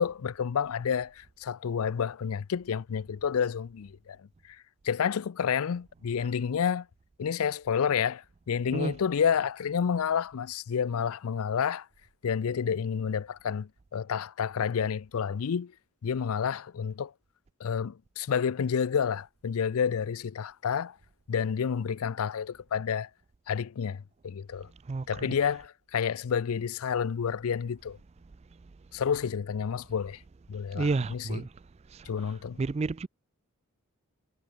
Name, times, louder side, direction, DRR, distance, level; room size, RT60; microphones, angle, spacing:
voice 1, 0.0-4.2 4.8-6.9 7.2-11.9 12.2-15.7 16.0-17.1 17.6-20.9 21.3-23.1 23.5-24.7 25.1-28.0 28.9-30.2 30.5-31.4 32.1-32.6, left 7 dB, 75° left, 0.4 m, -29 dB
voice 2, 24.9-25.4 30.7-31.5 31.9-32.3 32.6-33.1, right 3 dB, 30° right, 0.3 m, -31 dB
head